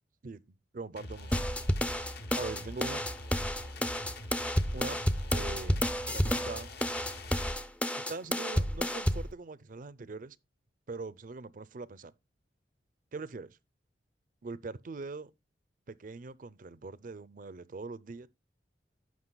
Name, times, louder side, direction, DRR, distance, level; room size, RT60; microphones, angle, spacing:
voice 1, 0.2-1.4 2.4-3.0 4.7-5.0 5.3-6.7 7.9-10.4 10.9-12.1 13.1-13.6 14.4-15.3 15.9-18.3, right 3 dB, 50° right, 0.5 m, -42 dB
sound 1, 1.0-7.5, left 1 dB, 60° left, 1.2 m, -44 dB
sound 2, 1.3-9.3, equal, 5° left, 0.5 m, -30 dB
15.5 x 5.9 x 2.2 m
head